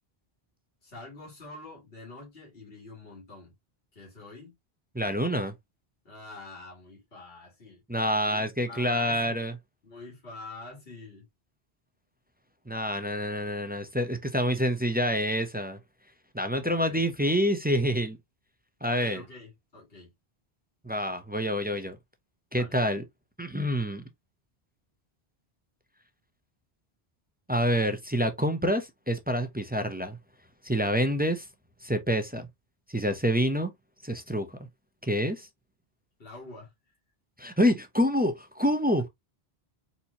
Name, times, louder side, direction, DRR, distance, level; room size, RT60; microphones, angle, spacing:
voice 1, 0.8-3.5 3.9-4.5 6.0-7.8 8.2-9.5 9.8-11.2 16.6-17.1 18.8-20.1 22.5-22.8 36.2-36.7, left 2 dB, 65° left, 2.5 m, -46 dB
voice 2, 4.9-5.5 7.9-9.5 12.7-15.8 16.3-18.2 18.8-19.2 20.8-22.0 22.5-23.0 23.4-24.0 27.5-30.2 30.6-31.5 31.8-32.5 32.9-33.7 34.0-34.7 35.0-35.5 37.4-39.1, equal, 10° right, 0.5 m, -27 dB
4.3 x 4.2 x 2.8 m
omnidirectional pair, 1.1 m